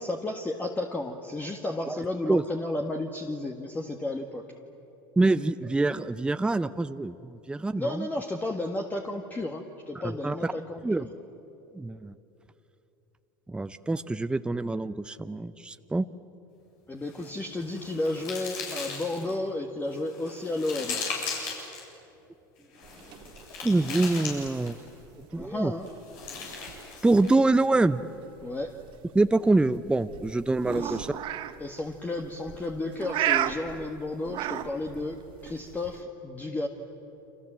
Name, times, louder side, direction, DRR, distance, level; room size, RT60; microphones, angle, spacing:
voice 1, 0.0-4.5 7.8-10.8 16.9-21.0 25.3-25.9 28.4-28.7 30.7-31.0 31.6-36.7, left 2 dB, 15° left, 3 dB, 1.8 m, -32 dB
voice 2, 5.2-8.1 10.0-10.5 10.8-11.1 11.8-12.1 13.5-16.0 23.6-24.8 25.3-25.7 27.0-28.0 29.1-31.1, right 2 dB, 10° right, 12 dB, 0.7 m, -25 dB
sound 1, 17.1-19.3 19.9-21.8 22.7-24.9 25.9-27.4, left 5 dB, 70° left, 7.9 m, -38 dB
sound 2, 22.8-36.0, right 12 dB, 50° right, 1.3 m, -36 dB
29.5 x 26.0 x 7.7 m, 2.9 s
hypercardioid pair, 95°, 11 cm